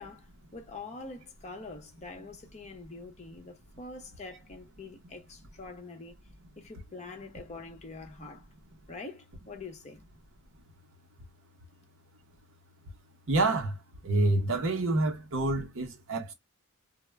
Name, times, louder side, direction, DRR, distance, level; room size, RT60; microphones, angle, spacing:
voice 1, 0.0-6.2 6.6-8.5 8.9-10.1, left 3 dB, 30° left, 0.6 m, -45 dB
voice 2, 13.3-13.8 14.0-16.3, right 2 dB, 60° right, 0.7 m, -27 dB
2.1 x 2.0 x 3.3 m
head